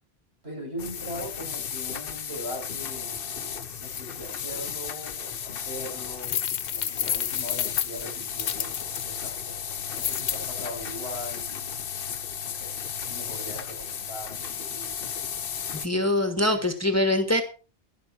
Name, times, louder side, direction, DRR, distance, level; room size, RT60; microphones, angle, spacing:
voice 1, 0.4-6.4 6.7-11.8 12.4-12.8 13.1-15.4, equal, 75° right, -1 dB, 7.7 m, -40 dB
sound 1, 0.8-15.9, left 8 dB, 60° left, 1.0 m, -34 dB
sound 2, 6.2-9.0 9.9-10.4, left 9 dB, 85° left, 1.1 m, -29 dB
voice 2, 15.8-17.4, left 1 dB, 15° left, 6 dB, 1.5 m, -23 dB
12.5 x 11.5 x 4.6 m, 0.34 s
omnidirectional pair, 1.1 m